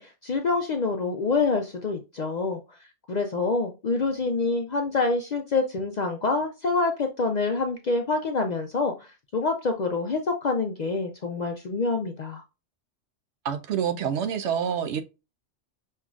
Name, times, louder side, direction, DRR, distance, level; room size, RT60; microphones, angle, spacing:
voice 1, 0.0-2.8 3.1-12.4, left 3 dB, 55° left, 0.5 m, -26 dB
voice 2, 13.4-15.0, right 8 dB, 75° right, 0.9 m, -27 dB
5.5 x 3.0 x 2.4 m
omnidirectional pair, 1.2 m